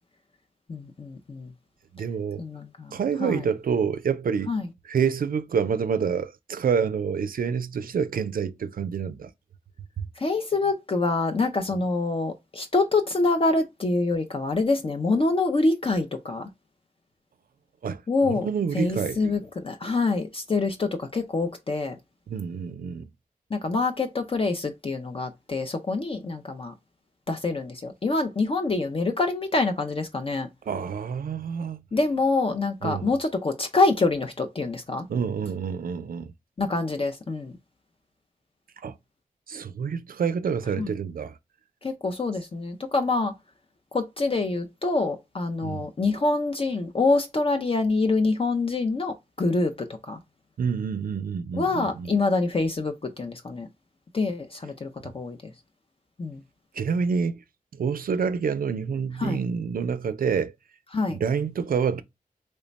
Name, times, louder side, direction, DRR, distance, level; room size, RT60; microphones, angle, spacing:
voice 1, 0.7-1.5 2.4-3.4 4.5-4.7 10.2-16.5 18.1-18.5 18.7-22.0 23.5-26.7 27.3-30.5 31.9-35.1 36.6-37.5 40.8-40.9 41.8-43.3 43.9-49.7 50.1-50.2 51.5-53.7 54.1-55.5 56.2-56.4 59.2-59.4 60.9-61.2, left 3 dB, 40° left, 0.5 m, -26 dB
voice 2, 1.9-2.4 2.9-4.5 4.8-9.3 10.0-10.1 11.7-11.8 17.8-19.2 22.3-23.1 30.7-31.8 32.8-33.1 35.1-36.3 38.8-39.0 39.5-41.4 45.6-45.9 50.6-52.1 56.7-57.4 57.7-60.5 61.1-62.0, right 6 dB, 80° right, 0.4 m, -27 dB
3.2 x 2.1 x 3.9 m
wide cardioid pair, 65°, 15 cm